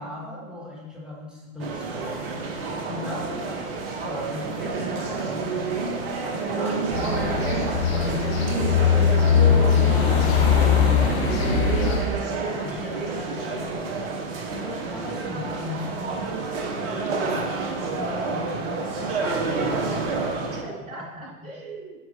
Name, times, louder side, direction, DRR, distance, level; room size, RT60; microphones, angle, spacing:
voice 1, 0.0-2.3 2.8-3.4 3.7-20.1 20.5-20.7 21.2-21.6, left 1 dB, ahead, -4 dB, 1.4 m, -37 dB
sound 1, 1.6-20.6, right 4 dB, 40° right, 1.2 m, -29 dB
voice 2, 3.2-3.6 7.8-7.9 20.6-22.0, right 2 dB, 75° right, -4 dB, 2.5 m, -40 dB
sound 2, 6.9-12.0, left 7 dB, 45° left, 1.5 m, -20 dB
13.0 x 4.5 x 2.9 m, 1.2 s
figure-of-eight pair, 105°, 42 cm